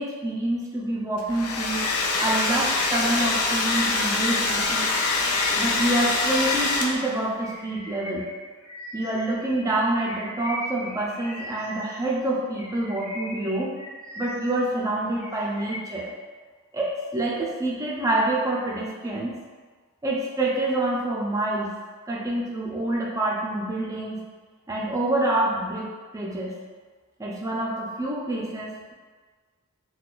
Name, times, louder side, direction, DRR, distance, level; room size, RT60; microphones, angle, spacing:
voice 1, 0.0-1.9 2.2-4.9 5.6-8.3 8.9-13.7 14.2-16.1 16.7-19.4 20.0-21.7 22.1-24.2 24.7-26.6 27.2-28.9, right 1 dB, 15° right, -4 dB, 0.4 m, -27 dB
Domestic sounds home sounds, 1.2-7.2, left 3 dB, 85° left, 0.4 m, -24 dB
Bird vocalization bird call bird song, 2.5-7.0 7.4-12.1 12.5-14.6 15.0-16.0, equal, 45° left, 1.5 m, -39 dB
3.8 x 2.2 x 2.4 m, 1.5 s
head